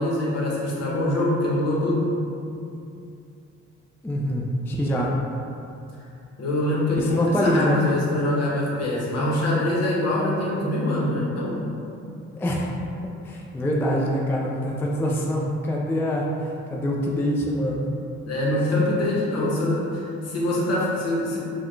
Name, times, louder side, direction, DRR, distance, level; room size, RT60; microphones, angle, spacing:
voice 1, 0.0-2.1 6.4-11.7 18.3-21.4, left 1 dB, 55° left, -4 dB, 1.0 m, -24 dB
voice 2, 4.0-5.1 6.9-8.0 12.4-12.7 13.0-17.9, equal, 10° left, -2 dB, 0.3 m, -25 dB
4.6 x 2.3 x 3.0 m, 2.6 s
cardioid pair, 90°, 30 cm